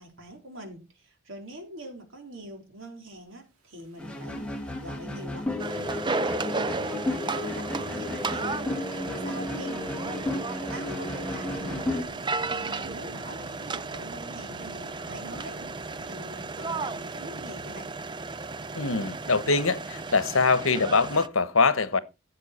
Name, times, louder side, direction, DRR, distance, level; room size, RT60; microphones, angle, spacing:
voice 1, 0.0-4.5 4.8-10.2 10.6-12.1 12.4-17.9, right 1 dB, 65° right, 4.0 m, -44 dB
sound 1, 3.8-21.0, right 1 dB, 85° right, 2.5 m, -50 dB
sound 2, 4.0-12.0, left 1 dB, 5° left, 2.0 m, -33 dB
sound 3, 5.6-21.3, right 3 dB, 20° right, 0.5 m, -34 dB
voice 2, 18.7-22.0, left 4 dB, 75° left, 1.2 m, -23 dB
15.5 x 7.5 x 4.3 m
head